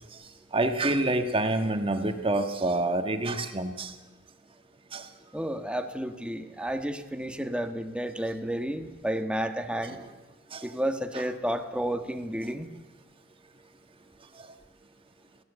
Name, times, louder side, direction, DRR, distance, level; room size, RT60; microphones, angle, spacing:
voice 1, 0.5-3.9 4.9-5.1 9.9-10.0 10.5-10.7 11.1-11.2, right 2 dB, 25° right, 1.5 m, -27 dB
voice 2, 5.3-10.0 10.6-12.7, equal, 5° right, 1.4 m, -31 dB
22.0 x 16.5 x 8.2 m
head